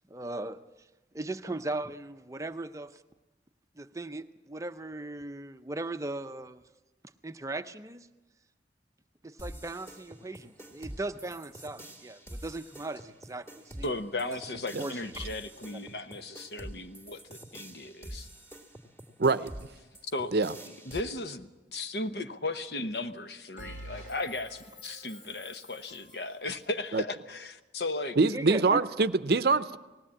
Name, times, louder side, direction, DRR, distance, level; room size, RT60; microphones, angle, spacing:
voice 1, 0.1-0.6 1.1-3.0 3.8-6.6 7.2-8.1 9.2-13.9 14.2-14.4 14.8-15.3 15.7-15.8 28.2-28.9, right 2 dB, 20° right, 10 dB, 0.6 m, -38 dB
sound 1, 9.4-21.0, right 1 dB, 15° left, 2.5 m, -46 dB
voice 2, 13.8-18.3 20.1-20.3 20.9-28.2, left 2 dB, 65° left, 9 dB, 1.0 m, -36 dB
voice 3, 19.2-19.5 20.3-20.5 26.9-27.0 28.2-29.8, right 3 dB, 60° right, 14 dB, 0.6 m, -24 dB
Bell, 23.6-26.4, equal, 45° left, 2.9 m, -47 dB
19.5 x 16.5 x 8.7 m, 1.1 s
head